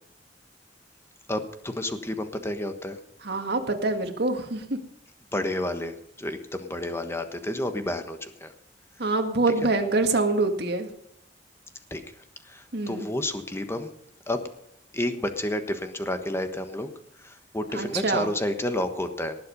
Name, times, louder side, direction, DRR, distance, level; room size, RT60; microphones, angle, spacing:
voice 1, 1.3-3.0 5.3-8.5 11.9-12.0 12.4-13.9 14.3-14.4 14.9-16.9 17.2-19.4, left 1 dB, 15° left, 7 dB, 1.3 m, -30 dB
voice 2, 3.2-4.8 9.0-10.9 12.7-13.1 17.7-18.3, right 3 dB, 65° right, 4 dB, 2.0 m, -25 dB
19.0 x 7.7 x 5.4 m, 0.74 s
head